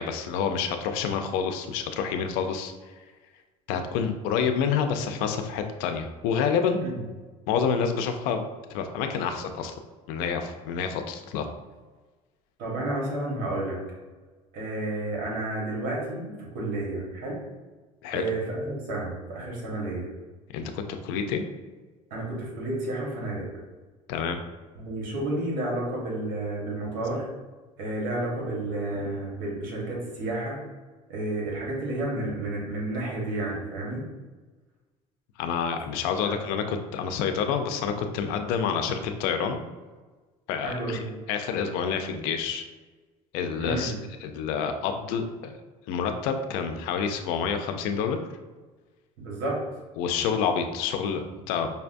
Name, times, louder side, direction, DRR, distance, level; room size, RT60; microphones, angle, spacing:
voice 1, 0.0-2.7 3.7-6.9 7.5-8.4 8.7-9.7 10.1-11.5 18.0-18.2 20.5-21.4 24.1-24.4 35.4-39.6 40.5-41.0 41.3-42.6 43.3-43.9 44.2-45.5 45.9-48.2 50.0-51.7, left 6 dB, 85° left, 6 dB, 0.4 m, -28 dB
voice 2, 12.6-13.8 14.5-17.4 18.1-20.1 22.1-23.5 24.8-27.3 27.8-30.6 31.1-34.0 36.2-36.4 40.6-41.1 43.6-44.0 49.2-49.6, right 2 dB, 75° right, -3 dB, 1.2 m, -31 dB
5.2 x 2.2 x 2.5 m, 1.3 s
cardioid pair, 115°, 15 cm